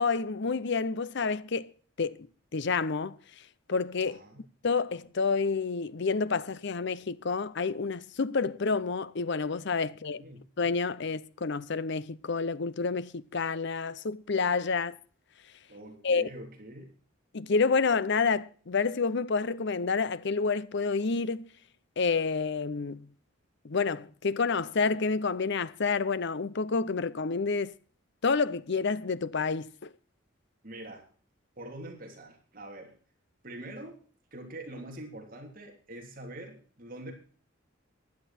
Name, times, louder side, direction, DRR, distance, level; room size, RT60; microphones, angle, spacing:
voice 1, 0.0-1.7 2.0-2.3 2.5-4.2 4.6-10.2 10.6-15.0 16.0-16.3 17.3-21.5 22.0-23.1 23.6-27.7 28.2-29.9, left 4 dB, 60° left, 0.7 m, -29 dB
voice 2, 4.0-4.4 10.1-10.4 15.7-16.9 30.6-31.1 31.6-32.9 33.4-34.0 34.3-37.1, right 1 dB, 45° right, 3.1 m, -44 dB
15.5 x 11.0 x 4.3 m
head